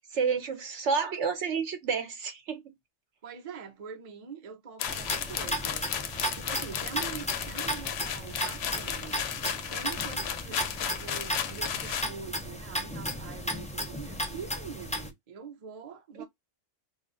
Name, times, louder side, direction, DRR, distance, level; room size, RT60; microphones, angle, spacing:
voice 1, 0.0-2.6 16.2-16.3, right 5 dB, 70° right, 1.0 m, -30 dB
voice 2, 3.2-5.9 6.3-9.2 9.7-16.3, right 7 dB, 40° right, 0.7 m, -44 dB
sound 1, 4.8-12.1, left 8 dB, 65° left, 0.7 m, -34 dB
sound 2, 4.9-15.1, equal, 10° left, 0.5 m, -35 dB
2.5 x 2.5 x 3.8 m
omnidirectional pair, 1.3 m